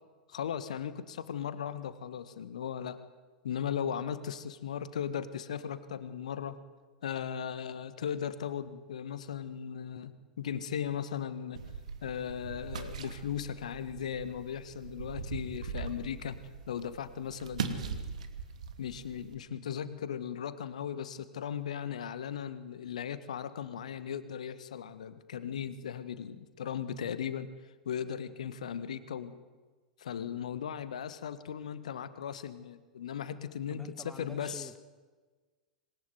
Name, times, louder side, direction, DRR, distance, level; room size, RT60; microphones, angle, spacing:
voice 1, 0.3-3.0 3.4-6.6 7.0-10.1 10.4-11.6 12.0-16.4 16.7-18.2 18.8-27.5 27.9-29.4 30.0-34.7, left 8 dB, 65° left, 1.6 m, -37 dB
sound 1, 11.5-19.4, right 6 dB, 65° right, 2.7 m, -41 dB
voice 2, 33.7-34.8, left 1 dB, 5° left, 1.5 m, -48 dB
26.5 x 21.0 x 9.5 m
figure-of-eight pair, 90°, 4 cm